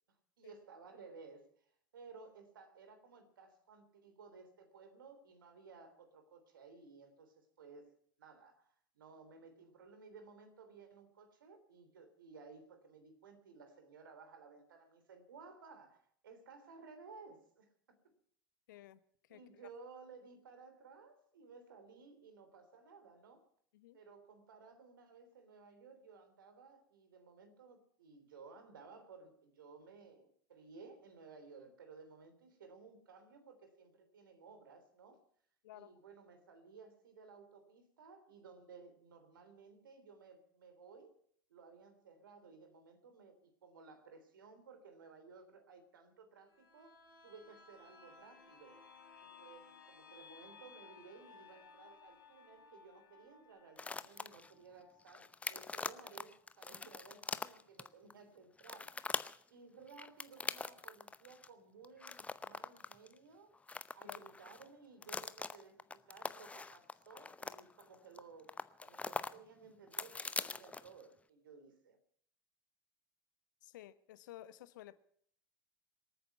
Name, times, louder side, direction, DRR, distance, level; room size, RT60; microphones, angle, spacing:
voice 1, 0.4-7.9 8.2-18.0 19.3-23.5 23.9-35.2 35.7-41.2 41.5-48.8 49.2-59.0 59.5-63.5 63.9-72.0, right 4 dB, 65° right, 8 dB, 3.4 m, -57 dB
voice 2, 18.7-19.0 19.3-19.4 23.7-24.0 35.6-36.0 64.0-64.2 73.6-75.0, left 14 dB, 60° left, 15 dB, 1.0 m, -54 dB
sound 1, 46.5-56.1 56.4-56.5, left 5 dB, 75° left, 5.3 m, -60 dB
sound 2, 53.8-54.5 55.0-58.1 58.6-59.4 59.9-61.5 61.8-63.2 63.5-64.7 65.0-68.2 68.5-69.3 69.6-71.0, left 4 dB, 10° left, 0.7 m, -43 dB
26.0 x 9.3 x 5.7 m, 0.62 s
figure-of-eight pair, 80°, 12 cm